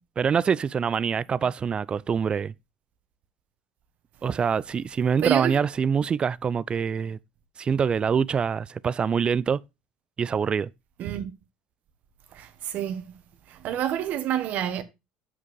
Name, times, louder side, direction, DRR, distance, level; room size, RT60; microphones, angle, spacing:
voice 1, 0.2-2.5 4.2-7.2 7.6-9.6 10.2-10.7, right 6 dB, 30° right, 0.4 m, -25 dB
voice 2, 5.2-5.5 11.0-11.3 12.3-13.1 13.5-14.8, right 11 dB, 55° right, 1.3 m, -28 dB
7.4 x 5.8 x 4.7 m
hypercardioid pair, 70°, 3 cm